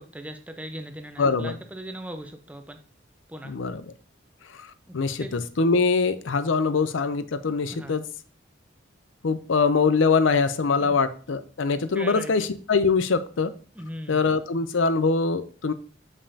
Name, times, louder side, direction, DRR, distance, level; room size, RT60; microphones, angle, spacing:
voice 1, 0.0-2.8 3.3-3.5 5.2-5.3 7.7-7.9 10.8-10.9 11.9-12.5 13.7-14.3, equal, 5° right, 7 dB, 0.5 m, -38 dB
voice 2, 1.2-1.6 3.4-3.8 4.9-8.0 9.2-13.5 14.1-15.7, left 4 dB, 80° left, 13 dB, 0.5 m, -23 dB
7.2 x 5.3 x 2.8 m, 0.42 s
head